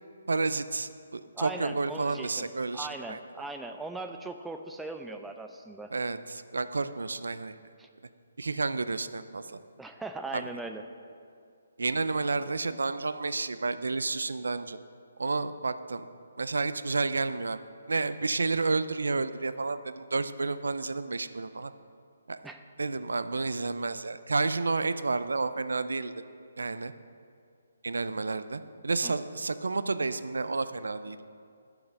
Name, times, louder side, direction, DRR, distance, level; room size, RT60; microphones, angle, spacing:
voice 1, 0.3-3.2 5.9-7.5 8.4-9.6 10.3-10.4 11.8-14.8 15.2-16.1 16.4-17.6 17.9-21.7 22.3-22.4 22.8-26.1 26.6-26.9 27.8-31.2, right 3 dB, 85° right, 12 dB, 0.4 m, -30 dB
voice 2, 1.3-2.4 2.7-5.9 7.8-7.9 9.8-10.8 22.4-22.6 29.0-29.1, right 3 dB, 5° right, 5 dB, 0.5 m, -39 dB
11.5 x 4.9 x 6.4 m, 2.3 s
hypercardioid pair, 155°, 0 cm